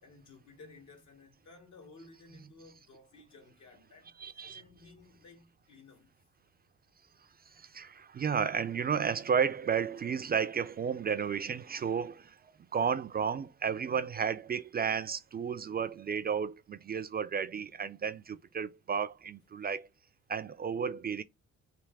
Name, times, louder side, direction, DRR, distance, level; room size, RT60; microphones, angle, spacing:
voice 1, 0.0-6.1, left 3 dB, 70° left, 2.0 m, -56 dB
voice 2, 4.2-4.6 7.5-19.9 20.3-21.2, right 7 dB, 30° right, 0.4 m, -33 dB
3.5 x 2.9 x 4.5 m
cardioid pair, 90°, 30 cm